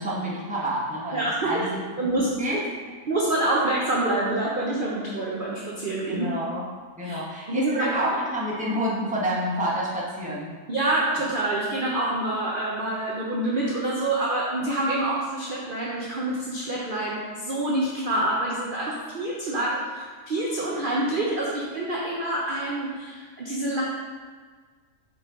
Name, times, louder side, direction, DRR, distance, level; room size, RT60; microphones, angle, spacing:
voice 1, 0.0-2.6 6.1-6.6 7.0-10.5, right 1 dB, 5° right, -5 dB, 0.8 m, -29 dB
voice 2, 1.1-1.7 2.0-2.5 3.1-6.3 7.0-7.2 7.5-7.9 10.7-23.8, right 1 dB, 45° right, -4 dB, 0.7 m, -27 dB
5.6 x 5.2 x 3.7 m, 1.5 s
omnidirectional pair, 1.7 m